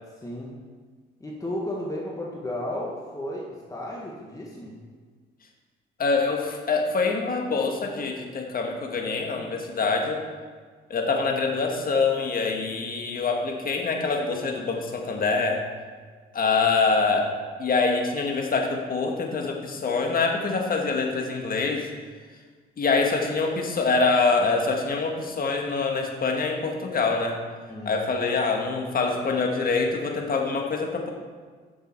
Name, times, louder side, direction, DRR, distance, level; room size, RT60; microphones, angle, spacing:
voice 1, 0.2-0.5 1.2-4.7 27.7-28.0, left 1 dB, 15° left, -3 dB, 1.6 m, -33 dB
voice 2, 6.0-10.2 10.9-15.6 16.3-17.3 17.6-21.9 22.8-27.4 27.8-31.1, left 4 dB, 45° left, 2 dB, 1.7 m, -25 dB
9.9 x 6.7 x 4.6 m, 1.5 s
cardioid pair, 90°, 20 cm